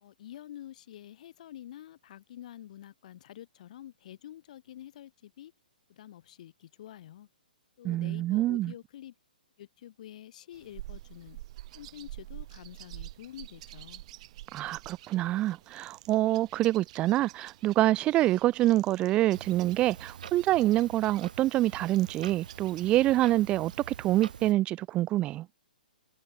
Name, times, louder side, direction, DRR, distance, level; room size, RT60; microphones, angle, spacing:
voice 1, 0.0-5.5 5.9-7.3 7.8-9.1 9.6-11.4 11.7-14.0, left 12 dB, 50° left, 1.3 m, -48 dB
voice 2, 7.8-8.7 14.5-25.5, right 15 dB, 20° right, 0.3 m, -26 dB
sound 1, 10.5-24.0, right 15 dB, 45° right, 0.8 m, -49 dB
Clock, 19.3-24.5, right 8 dB, 65° right, 4.1 m, -46 dB
figure-of-eight pair, 125°, 5 cm